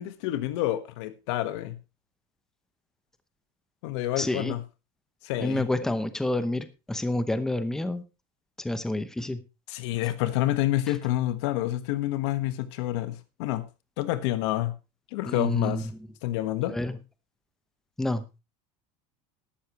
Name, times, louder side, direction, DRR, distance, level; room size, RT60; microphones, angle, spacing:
voice 1, 0.0-1.8 3.8-4.6 5.2-5.7 9.7-13.7 14.0-14.7 15.1-15.9 16.2-16.8, left 15 dB, 65° left, 1.5 m, -28 dB
voice 2, 4.2-4.5 5.4-8.0 8.6-9.4 15.2-15.8 16.7-17.0 18.0-18.2, left 1 dB, 5° left, 0.8 m, -28 dB
13.5 x 12.0 x 3.1 m
cardioid pair, 175°, 16 cm